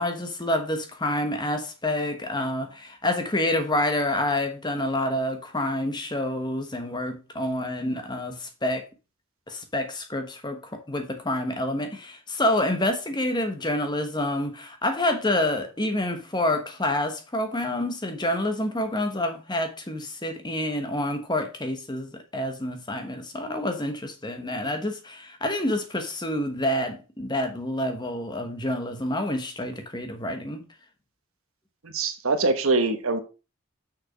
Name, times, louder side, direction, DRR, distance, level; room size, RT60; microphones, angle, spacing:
voice 1, 0.0-8.8 9.5-30.6, left 1 dB, 20° left, 1.1 m, -28 dB
voice 2, 31.8-33.2, right 3 dB, 80° right, 1.2 m, -23 dB
6.5 x 6.1 x 5.0 m
head